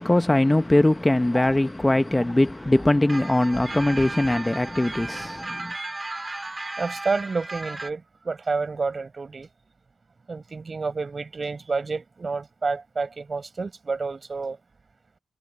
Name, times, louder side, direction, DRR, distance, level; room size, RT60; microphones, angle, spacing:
voice 1, 0.0-5.7, left 1 dB, 15° left, 0.8 m, -21 dB
sound 1, 3.1-7.9, right 2 dB, 20° right, 4.5 m, -35 dB
voice 2, 6.8-9.5 10.3-14.6, right 4 dB, 40° right, 4.8 m, -29 dB
cardioid pair, 75°, 0 cm